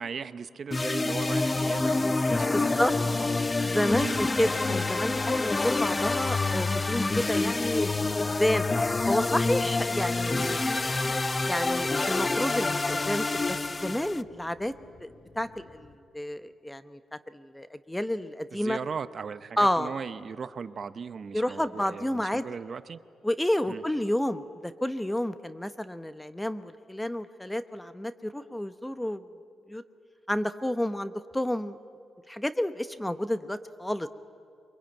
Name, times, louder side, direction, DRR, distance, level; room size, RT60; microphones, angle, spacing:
voice 1, 0.0-3.3 4.0-4.2 18.5-23.0 23.7-23.8, right 6 dB, 55° right, 13 dB, 0.8 m, -38 dB
sound 1, 0.7-14.2, left 3 dB, 25° left, 0.6 m, -27 dB
sound 2, 1.5-16.0, left 4 dB, 50° left, 4.6 m, -55 dB
voice 2, 2.5-2.9 3.6-7.9 8.4-8.6 9.1-10.9 11.5-14.7 15.0-17.0 17.3-18.8 19.6-19.9 21.3-22.4 23.2-29.2 29.7-29.8 30.3-31.8 32.3-34.1, left 1 dB, 10° left, 11 dB, 0.9 m, -30 dB
23.5 x 22.5 x 9.1 m, 2.4 s
cardioid pair, 65°, 0 cm